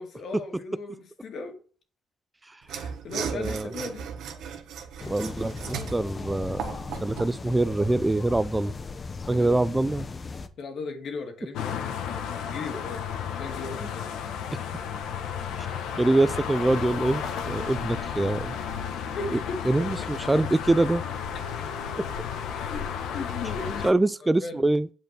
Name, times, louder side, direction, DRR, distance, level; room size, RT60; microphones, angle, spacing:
voice 1, 0.0-1.6 2.7-4.1 9.3-10.1 10.6-12.1 12.4-13.0 13.4-14.1 19.1-19.6 22.6-22.9 23.1-23.9 24.4-24.7, left 3 dB, 65° left, 2.2 m, -37 dB
Mechanisms / Sawing, 2.6-7.4, right 7 dB, 80° right, 1.3 m, -36 dB
voice 2, 3.3-3.7 5.1-6.6 7.0-8.7 9.3-10.1 14.5-14.6 15.6-15.7 16.0-18.6 19.7-21.0 23.8-24.9, right 2 dB, 15° right, 0.4 m, -24 dB
sound 1, 5.0-10.5, left 4 dB, 35° left, 1.0 m, -37 dB
sound 2, 11.5-23.9, left 7 dB, 90° left, 1.4 m, -33 dB
9.0 x 5.1 x 7.5 m
cardioid pair, 90°, 0 cm